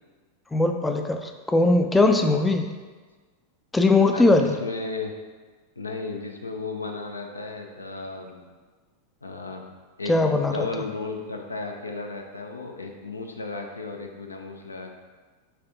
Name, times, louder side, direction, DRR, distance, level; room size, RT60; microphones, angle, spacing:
voice 1, 0.5-2.7 3.7-4.6 10.1-10.7, left 2 dB, 10° left, 5 dB, 0.3 m, -20 dB
voice 2, 4.1-5.1 5.8-8.5 9.2-9.6 10.0-14.9, left 3 dB, 80° left, 3 dB, 0.4 m, -34 dB
5.5 x 3.5 x 2.6 m, 1.4 s
figure-of-eight pair, 90°, 0 cm